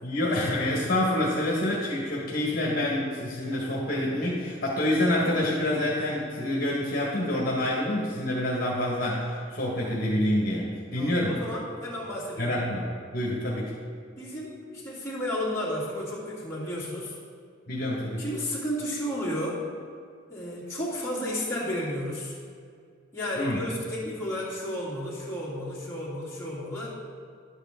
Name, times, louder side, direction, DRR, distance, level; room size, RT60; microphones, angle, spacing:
voice 1, 0.0-11.4 12.4-13.7 17.7-18.2 23.3-23.6, left 1 dB, 50° left, -4 dB, 1.6 m, -27 dB
voice 2, 11.0-12.6 14.1-17.2 18.2-19.7 20.3-22.4 23.1-26.9, left 1 dB, 15° left, -9 dB, 2.8 m, -32 dB
11.5 x 8.0 x 3.7 m, 2.2 s
head